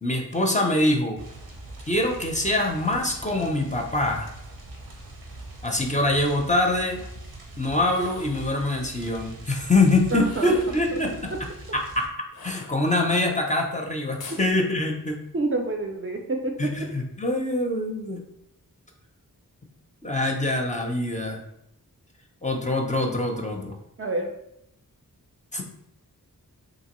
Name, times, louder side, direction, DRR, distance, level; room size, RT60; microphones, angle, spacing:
voice 1, 0.0-1.2 1.9-4.3 5.6-7.0 7.6-11.1 11.7-12.0 12.4-15.1 16.6-18.2 20.0-21.4 22.4-23.8 25.5-25.6, left 2 dB, 20° left, 1 dB, 0.5 m, -24 dB
sound 1, 1.2-12.1, right 2 dB, 90° right, 0.7 m, -42 dB
sound 2, 7.7-8.5 10.1-10.9 12.3-13.2 14.2-14.5, left 4 dB, 90° left, 0.5 m, -43 dB
voice 2, 10.1-10.5 11.1-11.4 14.3-14.4 15.3-16.9 24.0-24.3, right 2 dB, 40° right, 2 dB, 0.4 m, -28 dB
2.9 x 2.7 x 2.9 m, 0.78 s
wide cardioid pair, 75°, 35 cm